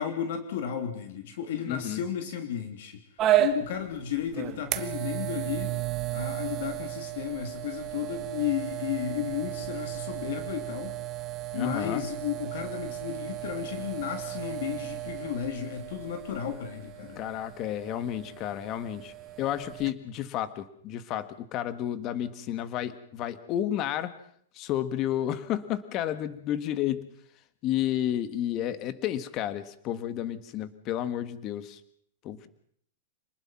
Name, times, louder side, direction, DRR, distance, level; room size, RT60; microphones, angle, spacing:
voice 1, 0.0-3.0 3.4-5.7 6.1-11.0 11.5-17.2, left 9 dB, 60° left, 6 dB, 3.3 m, -33 dB
voice 2, 1.7-2.0 11.5-12.0 17.1-19.1 19.4-24.1 24.5-27.1 27.6-31.8 32.2-32.5, left 11 dB, 30° left, 12 dB, 1.6 m, -31 dB
sound 1, 3.2-19.9, right 13 dB, 25° right, 1.5 m, -33 dB
27.0 x 20.0 x 5.9 m, 0.66 s
supercardioid pair, 160°, 0 cm